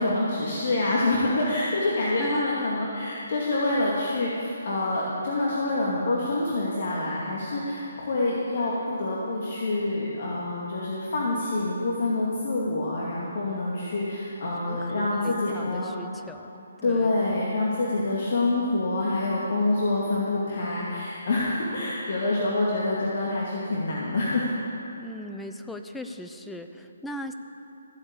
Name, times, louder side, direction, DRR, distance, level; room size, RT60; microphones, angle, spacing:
voice 1, 0.0-15.9 16.8-24.5, left 2 dB, 55° left, -5 dB, 2.4 m, -26 dB
voice 2, 2.2-2.7 14.5-17.2 24.9-27.3, left 1 dB, 5° left, 6 dB, 0.5 m, -39 dB
15.0 x 8.3 x 8.2 m, 3.0 s
hypercardioid pair, 165°, 0 cm